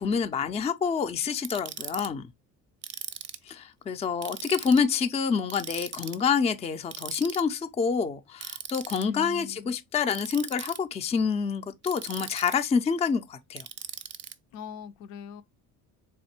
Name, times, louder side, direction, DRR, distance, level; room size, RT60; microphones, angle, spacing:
voice 1, 0.0-2.3 3.5-13.7, left 6 dB, 20° left, 0.4 m, -27 dB
Ratchet pawl, 1.4-2.1 2.8-3.5 4.2-4.8 5.5-6.2 6.9-7.4 8.4-9.0 10.1-10.8 11.8-12.7 13.6-14.3, right 8 dB, 35° right, 0.5 m, -38 dB
voice 2, 9.0-9.7 14.5-15.4, left 7 dB, 85° left, 0.7 m, -40 dB
3.6 x 3.2 x 4.3 m
cardioid pair, 110°, 35 cm